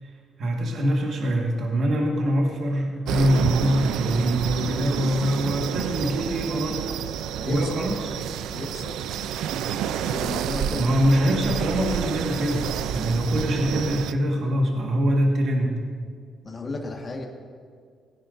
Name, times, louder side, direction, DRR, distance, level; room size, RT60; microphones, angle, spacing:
voice 1, 0.4-6.9 7.4-8.2 10.7-15.8, equal, 65° right, 0 dB, 1.6 m, -24 dB
sound 1, 3.1-14.1, right 9 dB, 85° right, 0.4 m, -29 dB
voice 2, 8.5-9.0 10.0-11.2 16.4-17.3, left 2 dB, 35° left, 1 dB, 1.5 m, -33 dB
17.5 x 10.0 x 2.6 m, 2.1 s
cardioid pair, 90°, 0 cm